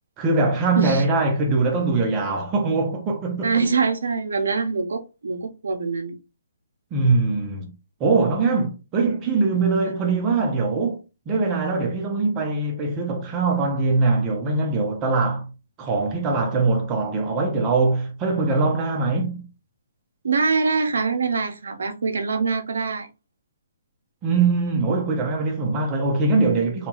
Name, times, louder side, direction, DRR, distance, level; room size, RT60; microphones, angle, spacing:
voice 1, 0.2-3.6 6.9-7.7 8.0-11.0 11.3-15.5 15.8-19.5 24.2-26.9, right 3 dB, 20° right, 0.6 m, -22 dB
voice 2, 3.4-6.2 20.2-23.1, right 4 dB, 80° right, 0.6 m, -24 dB
2.8 x 2.3 x 2.8 m
hypercardioid pair, 160°, 0 cm